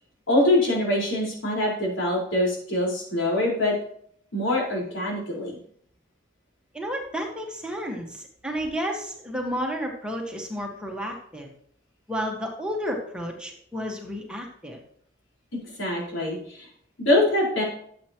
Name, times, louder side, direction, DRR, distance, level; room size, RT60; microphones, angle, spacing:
voice 1, 0.3-3.7 4.3-5.6 15.8-16.7 17.0-17.6, left 1 dB, 90° left, -3 dB, 4.6 m, -24 dB
voice 2, 6.7-11.5 12.1-14.8, equal, 5° right, 0 dB, 1.5 m, -31 dB
12.5 x 7.9 x 3.0 m, 0.64 s
head